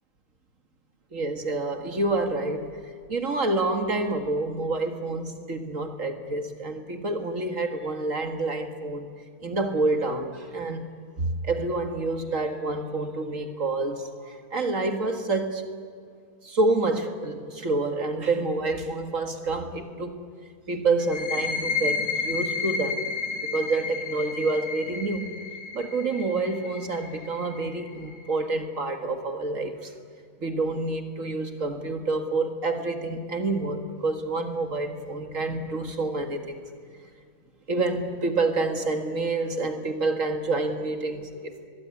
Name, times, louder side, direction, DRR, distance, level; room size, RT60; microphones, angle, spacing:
voice 1, 1.1-9.1 9.4-10.9 11.2-15.6 16.4-20.3 20.7-23.0 23.4-25.3 25.7-29.9 30.4-36.6 37.7-41.6, right 2 dB, 55° right, 6 dB, 2.1 m, -28 dB
sound 1, 21.0-28.4, left 5 dB, 80° left, 4.5 m, -32 dB
23.0 x 22.0 x 9.8 m, 2.1 s
omnidirectional pair, 1.6 m